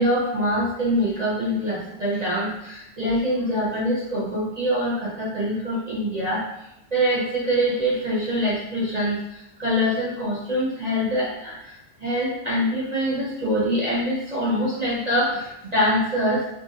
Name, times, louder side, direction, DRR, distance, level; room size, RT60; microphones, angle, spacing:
voice 1, 0.0-6.4 6.9-11.7 12.0-16.4, equal, 40° right, -6 dB, 0.6 m, -24 dB
3.0 x 2.6 x 4.0 m, 0.83 s
omnidirectional pair, 1.7 m